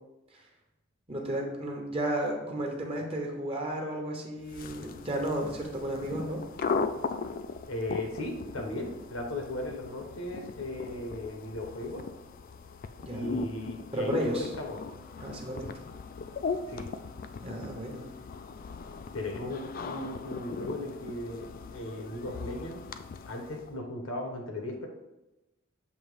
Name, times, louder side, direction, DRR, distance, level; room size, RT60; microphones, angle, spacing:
voice 1, 1.1-6.4 13.0-13.3 13.9-14.5 15.2-15.7 17.4-18.0, right 1 dB, 30° right, 0 dB, 1.0 m, -33 dB
sound 1, 4.4-23.8, left 4 dB, 45° left, 0.3 m, -39 dB
voice 2, 7.7-12.0 13.1-14.8 16.7-16.9 19.1-22.8 23.3-24.9, left 1 dB, 85° left, 1 dB, 1.3 m, -37 dB
7.1 x 2.9 x 5.0 m, 0.99 s
head